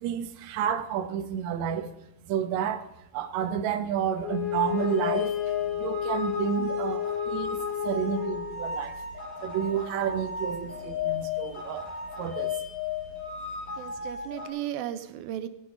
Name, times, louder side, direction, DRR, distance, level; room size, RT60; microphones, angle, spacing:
voice 1, 0.0-1.9 2.3-2.9 3.1-9.0 9.4-11.9 12.2-12.6, right 9 dB, 65° right, 7 dB, 1.9 m, -30 dB
Wind instrument woodwind instrument, 4.2-8.8, left 9 dB, 30° left, 2.3 m, -31 dB
sound 1, 4.5-14.5, left 5 dB, 15° left, 5.8 m, -35 dB
voice 2, 13.8-15.5, right 12 dB, 80° right, 11 dB, 2.4 m, -35 dB
18.0 x 10.0 x 5.1 m, 0.81 s
omnidirectional pair, 4.3 m